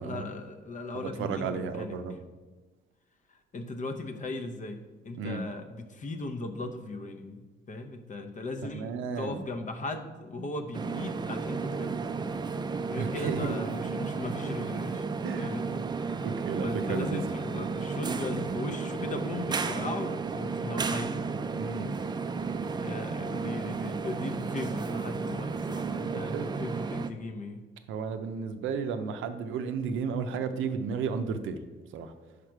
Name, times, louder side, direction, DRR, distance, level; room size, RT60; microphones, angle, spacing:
voice 1, 0.0-1.9 3.5-8.9 9.2-12.0 12.9-15.6 16.6-21.3 22.8-27.6, left 2 dB, 40° left, 7 dB, 0.7 m, -37 dB
voice 2, 0.9-2.2 5.1-5.4 8.6-9.4 13.0-13.6 15.2-15.6 16.2-17.2 21.5-21.9 26.1-26.5 27.9-31.6 31.9-32.1, right 5 dB, 80° right, 8 dB, 0.6 m, -33 dB
sound 1, 10.7-27.1, right 4 dB, 20° right, 0.4 m, -33 dB
5.0 x 4.9 x 4.6 m, 1.2 s
cardioid pair, 90°, 20 cm